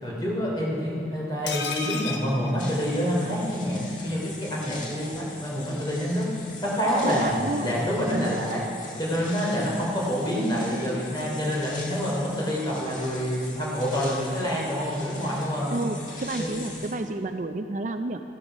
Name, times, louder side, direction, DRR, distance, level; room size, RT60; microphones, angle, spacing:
voice 1, 0.0-6.3 6.6-15.7 16.3-16.5, equal, 25° left, -4 dB, 3.1 m, -27 dB
sound 1, 1.5-3.4 3.7-3.8 4.1-4.2, left 5 dB, 80° left, 1.1 m, -33 dB
sound 2, 2.6-17.0, left 3 dB, 45° left, 1.7 m, -42 dB
voice 2, 7.0-7.7 8.0-8.4 15.7-18.2, right 2 dB, 45° right, 7 dB, 0.4 m, -30 dB
14.0 x 11.5 x 5.1 m, 2.6 s
head